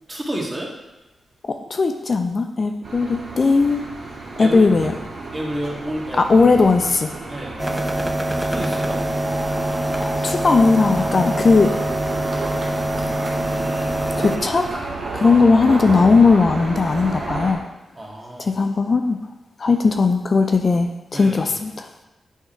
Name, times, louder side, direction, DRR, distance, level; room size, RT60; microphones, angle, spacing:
voice 1, 0.1-0.7 4.4-4.6 5.3-6.2 7.3-7.6 8.4-9.0 18.0-18.5 21.1-21.5, right 1 dB, 25° right, -2 dB, 1.9 m, -29 dB
voice 2, 1.4-3.8 4.4-4.9 6.1-7.1 10.0-11.7 14.2-14.7 15.1-17.6 18.4-19.2 19.6-21.9, left 4 dB, 50° left, 6 dB, 0.5 m, -17 dB
sound 1, 2.8-17.5, right 3 dB, 65° right, 1.8 m, -31 dB
sound 2, 7.6-14.4, right 1 dB, 10° right, 0.7 m, -24 dB
8.3 x 3.7 x 4.4 m, 1.0 s
supercardioid pair, 45°, 0 cm